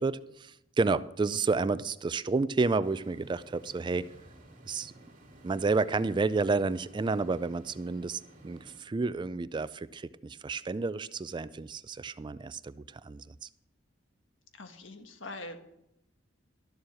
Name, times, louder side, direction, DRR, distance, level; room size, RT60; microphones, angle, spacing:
voice 1, 0.0-4.1 4.7-4.9 5.4-13.5, right 3 dB, 25° right, 16 dB, 0.3 m, -30 dB
sound 1, 2.8-8.8, right 1 dB, 45° right, 2.5 m, -54 dB
voice 2, 14.5-15.6, left 2 dB, 80° left, 7 dB, 1.4 m, -43 dB
12.5 x 7.3 x 6.3 m, 0.84 s
head